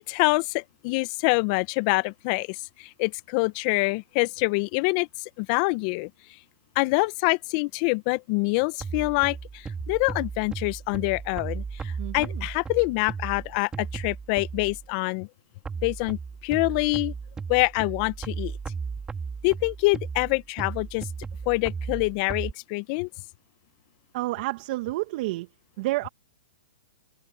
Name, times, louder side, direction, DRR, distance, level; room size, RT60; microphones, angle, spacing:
voice 1, 0.0-6.1 6.7-15.3 15.8-17.1 17.5-18.5 19.4-21.1 21.4-23.1, left 27 dB, 40° left, 1.4 m, -26 dB
sound 1, 8.8-14.9 15.6-22.5, right 5 dB, 10° right, 3.7 m, -35 dB
voice 2, 12.0-12.4 24.1-25.5 25.8-26.1, right 19 dB, 45° right, 1.7 m, -29 dB
open air
hypercardioid pair, 130°, 6 cm